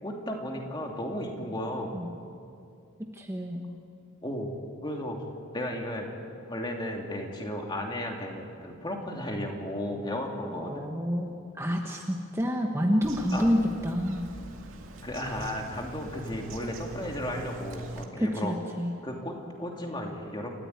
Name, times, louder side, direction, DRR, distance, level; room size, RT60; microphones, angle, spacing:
voice 1, 0.0-2.0 4.2-4.5 4.8-5.2 5.5-6.2 6.5-10.8 13.3-13.5 15.0-18.6 19.0-20.5, left 1 dB, 20° left, 1 dB, 2.8 m, -34 dB
voice 2, 3.1-3.7 10.4-14.3 18.2-18.9, equal, 10° right, 1 dB, 1.3 m, -28 dB
Bird vocalization bird call bird song, 13.0-18.0, right 2 dB, 70° right, 2.3 m, -42 dB
29.0 x 14.0 x 9.6 m, 2.5 s
head